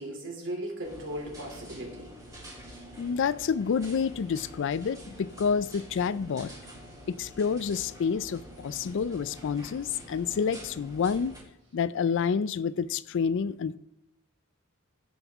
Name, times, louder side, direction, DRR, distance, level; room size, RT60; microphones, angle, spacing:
voice 1, 0.0-2.1, right 1 dB, 60° right, 2.9 m, -37 dB
sound 1, 0.8-11.4, right 1 dB, 15° right, 3.4 m, -47 dB
voice 2, 3.0-6.5 7.1-11.3 11.7-13.8, left 6 dB, 60° left, 0.4 m, -28 dB
16.5 x 5.4 x 3.6 m
head